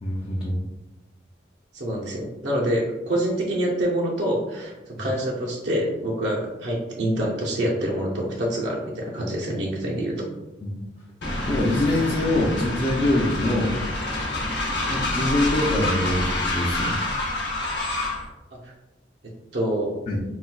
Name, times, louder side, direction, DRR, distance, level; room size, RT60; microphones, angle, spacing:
voice 1, 0.0-0.6 4.9-5.1 10.6-10.8 11.5-13.8 14.9-17.0 20.1-20.2, left 1 dB, 30° left, -4 dB, 0.3 m, -24 dB
voice 2, 1.7-10.2 18.6-18.7 19.5-20.0, right 1 dB, 80° right, -4 dB, 0.6 m, -26 dB
Train, 11.2-18.3, left 2 dB, 80° left, 0.7 m, -27 dB
4.1 x 2.1 x 2.3 m, 1.0 s
head